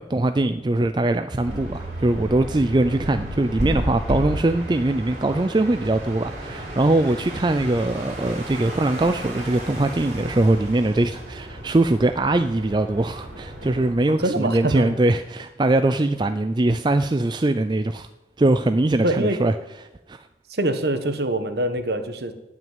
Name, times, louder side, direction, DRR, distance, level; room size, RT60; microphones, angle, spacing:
voice 1, 0.0-18.1 18.4-19.5 20.1-20.2, right 2 dB, 25° right, 9 dB, 0.4 m, -22 dB
sound 1, 1.4-13.9, right 1 dB, 40° right, 4.2 m, -33 dB
voice 2, 14.2-15.0 19.0-19.4 20.5-22.3, right 1 dB, 60° right, 9 dB, 1.3 m, -24 dB
17.0 x 6.2 x 9.0 m, 1.0 s
head